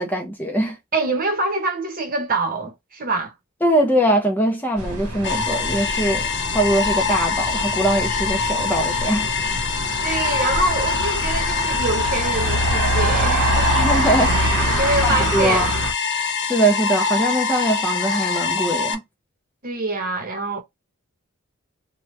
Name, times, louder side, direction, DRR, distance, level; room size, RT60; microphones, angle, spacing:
voice 1, 0.0-0.8 3.6-6.3 6.5-9.3 13.7-15.7 16.1-19.0, right 1 dB, 10° left, 0.6 m, -22 dB
voice 2, 0.9-3.3 10.0-13.8 14.8-15.7 19.6-20.6, right 3 dB, 40° right, 0.9 m, -25 dB
sound 1, 4.8-15.9, right 1 dB, 85° right, 0.9 m, -25 dB
sound 2, 5.2-18.9, left 5 dB, 55° left, 0.6 m, -24 dB
3.0 x 2.2 x 3.1 m
head